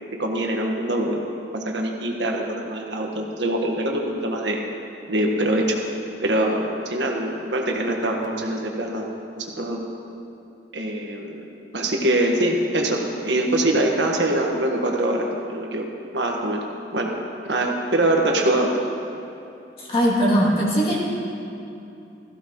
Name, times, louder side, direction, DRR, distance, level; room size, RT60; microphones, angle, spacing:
voice 1, 0.2-1.2 1.5-4.6 5.1-5.8 6.2-9.1 9.4-9.8 10.7-11.5 11.7-15.8 16.1-16.6 16.9-17.1 17.4-18.7, right 1 dB, 85° right, 0 dB, 1.5 m, -23 dB
voice 2, 19.8-21.0, equal, 35° left, -5 dB, 2.7 m, -20 dB
17.0 x 15.0 x 3.1 m, 2.7 s
head